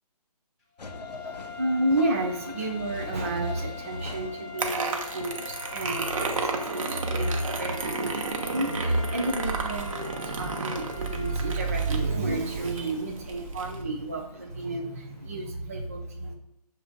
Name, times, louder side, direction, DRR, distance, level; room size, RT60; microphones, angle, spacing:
sound 1, 0.8-15.3, left 3 dB, 85° left, 0.6 m, -47 dB
sound 2, 0.8-12.3, left 5 dB, 5° left, 1.2 m, -42 dB
voice 1, 1.1-16.3, right 2 dB, 20° right, 1 dB, 0.3 m, -30 dB
sound 3, 4.6-13.8, right 4 dB, 55° right, 0.8 m, -33 dB
6.5 x 2.5 x 2.4 m, 0.85 s
figure-of-eight pair, 145°, 21 cm